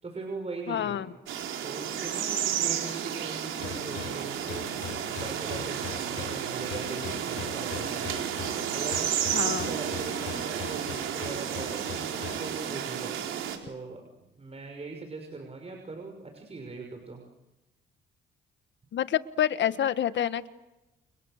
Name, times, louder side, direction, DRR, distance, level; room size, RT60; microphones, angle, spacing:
voice 1, 0.0-1.0 1.6-8.2 8.7-13.3 13.6-17.2, right 3 dB, 30° right, 3 dB, 6.1 m, -41 dB
voice 2, 0.7-1.1 9.3-9.7 18.9-20.5, left 10 dB, 65° left, 12 dB, 1.6 m, -27 dB
sound 1, 1.3-13.6, right 9 dB, 85° right, 4.3 m, -32 dB
sound 2, 3.6-12.5, left 8 dB, 85° left, 5.0 m, -42 dB
30.0 x 29.5 x 6.7 m, 1.0 s
cardioid pair, 90°, 20 cm